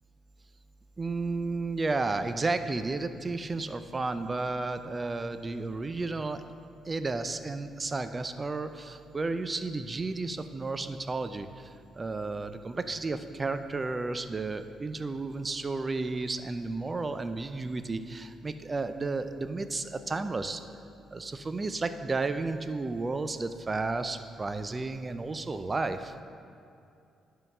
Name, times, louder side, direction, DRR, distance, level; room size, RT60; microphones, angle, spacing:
voice 1, 1.0-6.4 6.9-20.6 21.1-26.1, right 3 dB, 25° right, 10 dB, 0.4 m, -32 dB
10.5 x 3.8 x 5.4 m, 2.5 s
cardioid pair, 90°, 0 cm